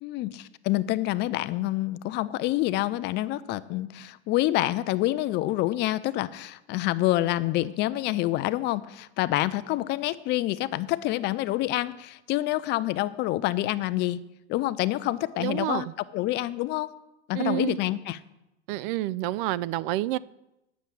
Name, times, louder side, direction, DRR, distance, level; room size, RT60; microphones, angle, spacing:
voice 1, 0.0-14.2 14.5-15.9 16.1-16.9 17.3-18.2, left 16 dB, 35° left, 0.5 m, -27 dB
voice 2, 15.4-15.9 17.3-17.8 18.7-20.2, right 15 dB, 50° right, 0.5 m, -28 dB
10.0 x 7.1 x 7.6 m
supercardioid pair, 130°, 33 cm